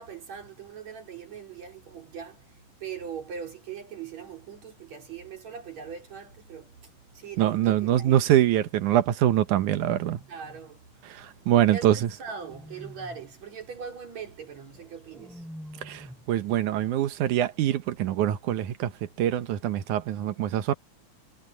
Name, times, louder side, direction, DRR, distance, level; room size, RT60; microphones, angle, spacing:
voice 1, 0.0-2.4 2.8-6.7 7.1-8.1 10.3-10.8 11.7-11.9 12.2-15.4, right 7 dB, 60° right, 4.7 m, -40 dB
voice 2, 7.4-10.2 11.1-12.1 15.8-18.9 19.2-20.7, right 12 dB, 75° right, 2.5 m, -24 dB
sound 1, 9.9-10.7 12.0-13.3 14.7-16.3, equal, ahead, 3.7 m, -47 dB
omnidirectional pair, 3.6 m